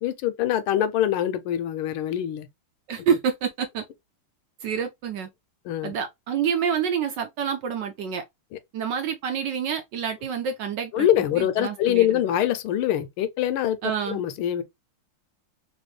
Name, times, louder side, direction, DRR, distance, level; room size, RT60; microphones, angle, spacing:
voice 1, 0.0-2.5 5.6-5.9 10.9-13.8 14.1-14.6, left 11 dB, 80° left, 1.5 m, -24 dB
voice 2, 2.9-3.8 4.6-5.3 5.8-8.2 8.7-11.1 11.4-12.1 13.8-14.2, right 7 dB, 75° right, 1.1 m, -27 dB
3.4 x 2.9 x 3.1 m
omnidirectional pair, 2.3 m